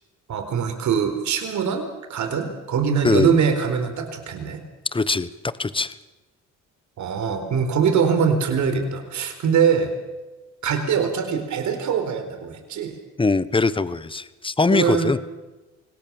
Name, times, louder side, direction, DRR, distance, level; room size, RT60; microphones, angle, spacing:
voice 1, 0.3-4.6 7.0-9.9 10.6-12.9 14.7-15.1, right 6 dB, 70° right, 6 dB, 4.4 m, -23 dB
voice 2, 3.0-3.3 4.9-5.3 5.6-5.9 13.2-15.2, left 3 dB, 15° left, 16 dB, 1.1 m, -21 dB
26.0 x 18.5 x 7.2 m, 1.1 s
cardioid pair, 90°, 30 cm